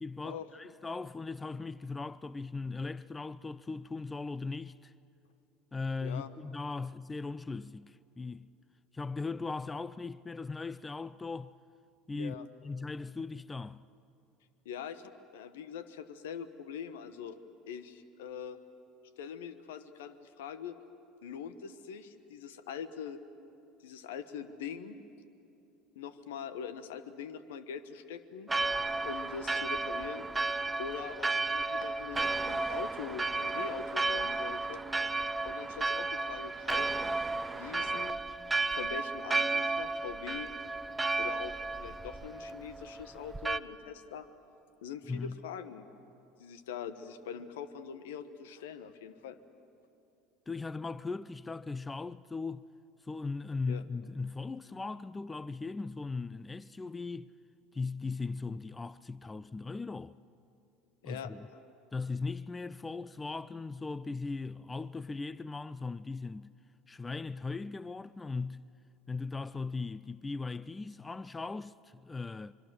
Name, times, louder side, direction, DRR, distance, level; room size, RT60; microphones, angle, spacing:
voice 1, 0.0-4.9 5.7-8.5 8.9-11.5 12.1-13.9 45.1-45.4 50.5-52.6 53.0-57.3 57.7-60.2 61.0-61.5 61.9-66.5 66.9-68.7 69.1-72.5, left 4 dB, 20° left, 0.5 m, -38 dB
voice 2, 6.0-6.3 12.1-12.5 14.6-17.4 17.7-18.6 19.2-20.7 21.2-23.2 23.8-25.0 25.9-28.5 29.0-30.3 30.8-34.8 35.4-37.3 37.5-38.2 38.7-40.5 41.2-41.5 41.8-44.3 44.8-45.8 46.4-49.4 53.7-53.8 61.0-61.3, left 7 dB, 80° left, 1.2 m, -43 dB
Church bell, 28.5-43.6, right 3 dB, 15° right, 0.8 m, -33 dB
25.0 x 23.5 x 7.6 m
hypercardioid pair, 75°, 0 cm